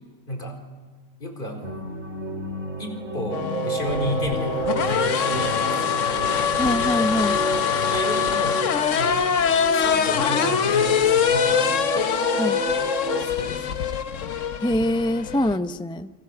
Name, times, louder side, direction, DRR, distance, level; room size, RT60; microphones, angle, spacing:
voice 1, 1.2-1.8 2.8-6.1 7.8-8.6 9.0-9.3 9.7-11.7 13.2-13.9, equal, 45° left, 4 dB, 4.7 m, -32 dB
sound 1, 1.6-8.0, left 1 dB, 65° right, 2.6 m, -35 dB
sound 2, 2.6-13.2, right 4 dB, 85° right, 2.1 m, -31 dB
sound 3, 3.3-15.6, left 7 dB, 85° left, 1.4 m, -23 dB
voice 2, 6.6-7.4 12.3-12.6 14.6-16.1, left 1 dB, 5° left, 12 dB, 0.4 m, -24 dB
29.5 x 24.5 x 7.8 m, 1.5 s
omnidirectional pair, 1.3 m